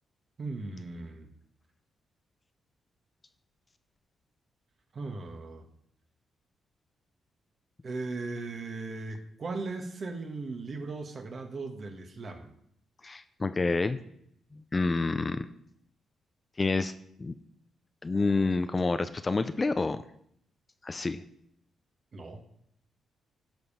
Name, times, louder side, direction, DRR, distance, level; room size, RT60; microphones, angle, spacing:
voice 1, 0.4-1.3 4.9-5.7 7.8-12.5 22.1-22.5, right 3 dB, 45° right, 5 dB, 1.7 m, -38 dB
voice 2, 13.0-14.0 14.5-15.5 16.6-16.9 17.2-17.3 18.0-20.0 20.8-21.2, left 3 dB, 25° left, 11 dB, 0.6 m, -28 dB
12.5 x 5.3 x 5.6 m, 0.70 s
cardioid pair, 85°, 0 cm